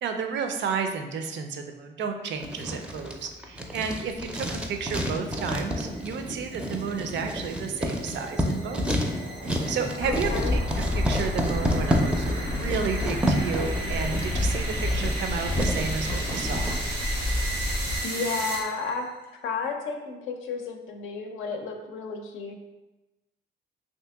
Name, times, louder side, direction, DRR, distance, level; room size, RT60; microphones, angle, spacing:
voice 1, 0.0-8.9 9.4-16.8, right 6 dB, 65° right, 6 dB, 0.4 m, -32 dB
Writing, 2.4-16.8, equal, 5° right, 0.4 m, -30 dB
sound 1, 4.7-19.0, right 2 dB, 85° right, 1.1 m, -37 dB
voice 2, 10.0-10.5 18.0-19.1 19.4-22.6, left 5 dB, 85° left, 3 dB, 0.5 m, -32 dB
sound 2, 10.0-18.0, left 2 dB, 35° left, 0.6 m, -29 dB
2.8 x 2.7 x 3.4 m, 1.1 s
cardioid pair, 90°, 20 cm